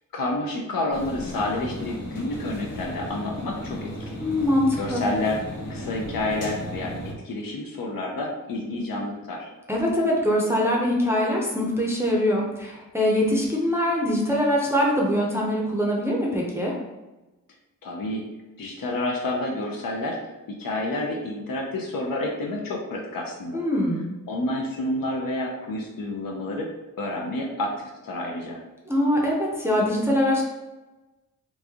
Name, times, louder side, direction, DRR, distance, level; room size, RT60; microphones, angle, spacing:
voice 1, 0.1-4.2 4.8-5.4 5.7-7.0 7.2-9.5 17.8-18.3 18.6-20.2 20.5-23.6 24.3-28.6, left 2 dB, 75° left, 0 dB, 0.6 m, -29 dB
sound 1, 0.9-7.1, equal, 45° left, 0.9 m, -35 dB
voice 2, 4.2-5.0 9.7-16.7 23.5-24.1 28.9-30.4, left 1 dB, 5° right, -3 dB, 0.5 m, -23 dB
3.1 x 2.6 x 3.5 m, 1.1 s
wide cardioid pair, 130°, 34 cm